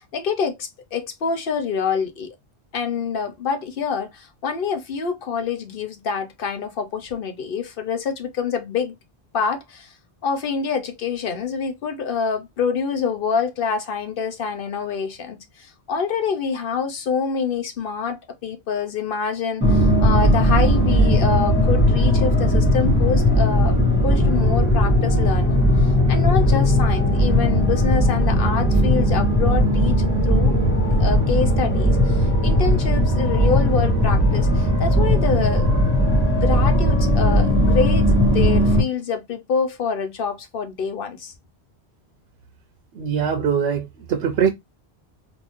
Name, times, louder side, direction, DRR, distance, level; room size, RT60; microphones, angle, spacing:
voice 1, 0.0-2.3 2.7-8.9 9.3-9.9 10.2-23.8 24.0-30.6 31.0-35.7 36.3-41.3, left 6 dB, 60° left, 0.9 m, -26 dB
sound 1, 19.6-38.8, equal, 10° left, 1.9 m, -18 dB
voice 2, 43.0-44.5, right 7 dB, 80° right, 0.9 m, -22 dB
3.7 x 2.5 x 3.1 m
omnidirectional pair, 1.1 m